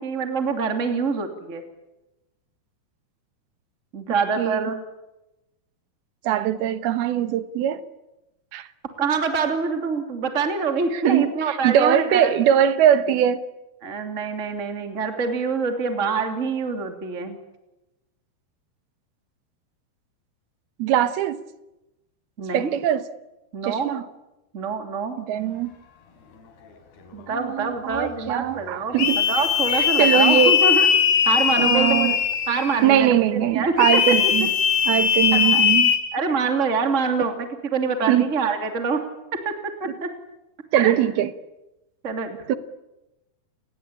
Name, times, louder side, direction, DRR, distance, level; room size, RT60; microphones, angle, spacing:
voice 1, 0.0-1.6 3.9-4.8 9.0-12.3 13.8-17.4 22.4-22.7 23.5-23.9 24.5-25.2 27.1-30.9 31.2-32.2 32.5-34.0 35.3-35.4 36.1-39.0 39.4-39.5 39.8-40.1 40.7-40.9 42.0-42.6, right 5 dB, 20° right, 2.7 m, -25 dB
voice 2, 6.2-7.8 8.5-8.7 10.9-13.4 20.8-21.4 22.5-23.0 23.6-24.0 25.2-25.7 27.3-29.2 29.7-30.6 31.6-32.2 32.8-34.5 34.9-35.9 38.1-38.3 40.7-41.3 42.5-42.6, right 10 dB, 75° right, 3.1 m, -21 dB
sound 1, 29.0-32.9 33.8-36.0, left 8 dB, 90° left, 4.9 m, -20 dB
30.0 x 21.0 x 8.7 m
omnidirectional pair, 4.5 m